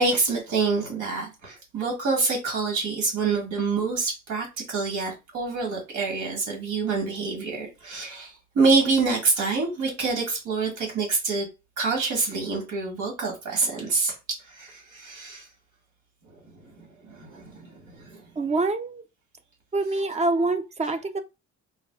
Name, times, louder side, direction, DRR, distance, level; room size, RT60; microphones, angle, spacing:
voice 1, 0.0-11.4 11.8-14.1 14.5-15.4 16.5-18.2, right 4 dB, 75° right, 1.7 m, -26 dB
voice 2, 18.4-19.0 19.7-21.2, right 2 dB, 25° right, 0.4 m, -25 dB
4.7 x 2.1 x 2.3 m
cardioid pair, 90°, 30 cm